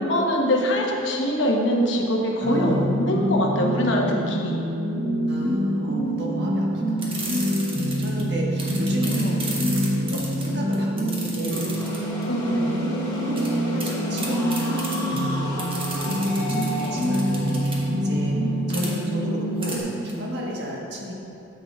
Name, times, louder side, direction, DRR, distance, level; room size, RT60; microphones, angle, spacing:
voice 1, 0.0-4.6 9.1-9.4 12.3-12.8 16.8-16.9, equal, 65° left, 0 dB, 1.0 m, -23 dB
voice 2, 2.4-2.9 5.3-7.1 7.3-9.5 10.1-11.7 12.4-12.8 13.7-18.4 18.7-21.1, equal, 55° right, -3 dB, 1.4 m, -34 dB
sound 1, 2.4-19.8, equal, 90° right, 1.9 m, -26 dB
sound 2, 7.0-8.2 8.6-12.2 13.4-13.5 13.8-13.9 14.2-15.2 15.6-17.8 18.7-18.9 19.6-19.8 20.1-20.2, right 2 dB, 25° right, 1.2 m, -33 dB
sound 3, 11.5-19.2, left 1 dB, 20° left, 1.4 m, -35 dB
11.0 x 7.8 x 2.4 m, 2.7 s
head